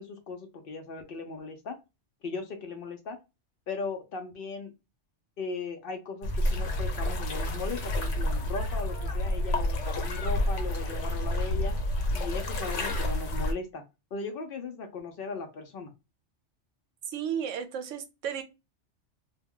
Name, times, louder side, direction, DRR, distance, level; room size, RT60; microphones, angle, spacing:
voice 1, 0.0-1.8 2.2-3.2 3.7-4.7 5.4-11.7 12.1-13.8 14.1-15.9, left 4 dB, 60° left, 0.6 m, -37 dB
sound 1, 6.2-13.5, left 1 dB, 80° left, 1.1 m, -29 dB
voice 2, 17.1-18.4, right 8 dB, 90° right, 0.9 m, -33 dB
2.2 x 2.2 x 3.5 m
omnidirectional pair, 1.2 m